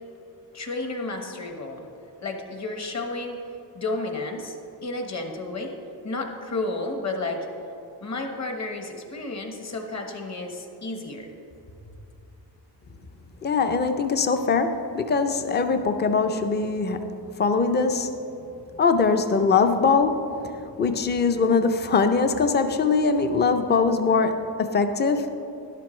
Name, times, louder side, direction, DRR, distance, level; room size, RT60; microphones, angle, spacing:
voice 1, 0.5-1.9 2.2-3.4 3.7-4.6 4.8-5.7 6.0-7.4 8.0-11.3, left 2 dB, 40° left, 3 dB, 1.3 m, -32 dB
voice 2, 13.4-18.1 18.8-20.3 20.8-25.4, left 4 dB, 25° left, 7 dB, 0.5 m, -22 dB
12.0 x 11.5 x 3.2 m, 2.8 s
wide cardioid pair, 145°, 41 cm